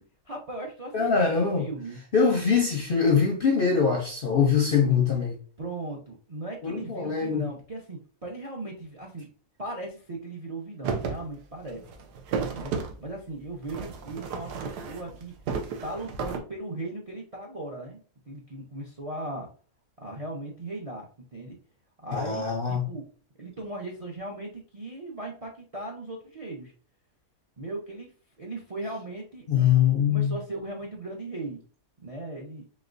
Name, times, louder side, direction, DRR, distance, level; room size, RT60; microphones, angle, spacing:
voice 1, 0.3-2.0 5.6-9.3 9.6-11.8 12.5-12.7 13.0-15.3 15.8-19.5 20.0-21.0 21.3-21.6 22.0-23.1 23.4-26.7 27.6-28.1 28.4-29.8 30.1-31.6 32.0-32.6, right 2 dB, 45° right, 0.4 m, -38 dB
voice 2, 0.9-1.7 2.1-5.3 6.6-7.5 22.1-22.9 29.5-30.4, left 6 dB, 55° left, 0.6 m, -23 dB
sound 1, 10.8-11.2 11.6-12.9 13.6-15.2 15.4-16.4, right 5 dB, 90° right, 1.3 m, -32 dB
4.1 x 3.5 x 2.5 m
omnidirectional pair, 1.7 m